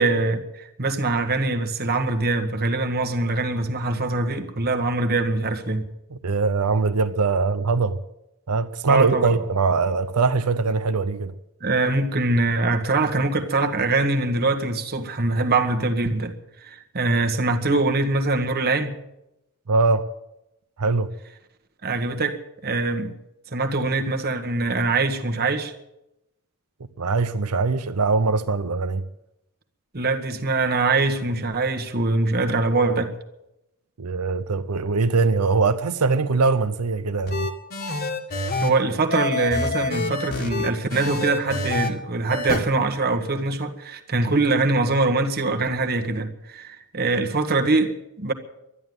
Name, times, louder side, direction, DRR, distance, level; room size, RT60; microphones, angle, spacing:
voice 1, 0.0-5.9 8.9-9.3 11.6-16.3 16.6-19.0 21.8-23.1 23.5-25.7 29.9-33.1 38.6-48.3, right 3 dB, 45° right, 1.5 m, -23 dB
voice 2, 6.1-8.0 8.5-11.3 19.7-20.1 20.8-21.1 27.0-29.0 34.0-37.5, right 4 dB, 85° right, 0.7 m, -22 dB
sound 1, 37.3-38.7 39.1-41.9 42.3-42.6, left 2 dB, 45° left, 1.8 m, -27 dB
12.5 x 11.0 x 9.5 m
head